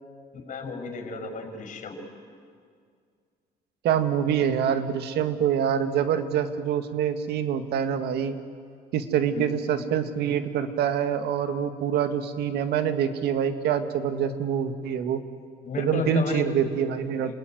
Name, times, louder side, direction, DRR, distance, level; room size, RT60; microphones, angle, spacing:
voice 1, 0.5-2.0 9.3-9.4 15.6-16.5 17.2-17.3, left 3 dB, 50° left, 5 dB, 6.4 m, -32 dB
voice 2, 3.8-8.4 8.9-15.2 15.8-17.3, right 8 dB, 75° right, 9 dB, 2.0 m, -25 dB
29.5 x 20.5 x 9.4 m, 2.1 s
cardioid pair, 110°, 17 cm